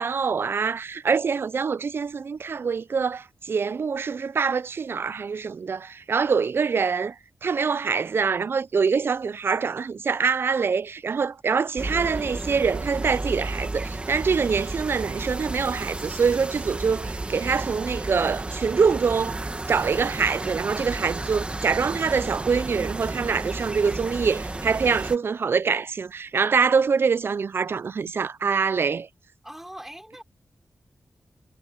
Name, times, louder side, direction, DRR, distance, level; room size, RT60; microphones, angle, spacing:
voice 1, 0.0-7.2 7.4-19.4 19.7-29.1, right 5 dB, 50° right, 0.4 m, -24 dB
sound 1, 11.8-25.2, right 2 dB, 20° right, 1.3 m, -32 dB
voice 2, 29.4-30.2, right 1 dB, 5° right, 4.7 m, -41 dB
wide cardioid pair, 130°, 5 cm